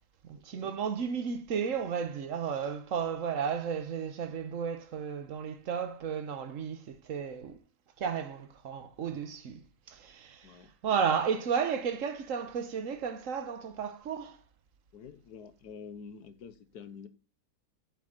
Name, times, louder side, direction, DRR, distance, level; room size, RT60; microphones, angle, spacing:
voice 1, 0.2-7.6 8.0-14.4, right 7 dB, 55° right, 1.3 m, -33 dB
voice 2, 14.9-17.1, left 6 dB, 70° left, 1.5 m, -47 dB
8.0 x 7.1 x 3.9 m
omnidirectional pair, 1.8 m